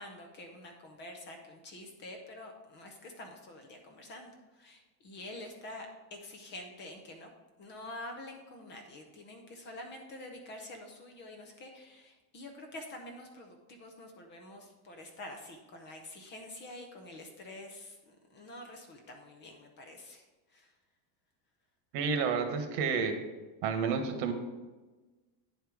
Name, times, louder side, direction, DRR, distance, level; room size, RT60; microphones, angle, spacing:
voice 1, 0.0-7.3 7.6-20.2 20.5-20.7, left 1 dB, 25° left, 3 dB, 0.6 m, -47 dB
voice 2, 21.9-23.1 23.6-24.3, right 5 dB, 75° right, 6 dB, 1.4 m, -30 dB
9.6 x 4.6 x 4.8 m, 1.2 s
cardioid pair, 175°, 48 cm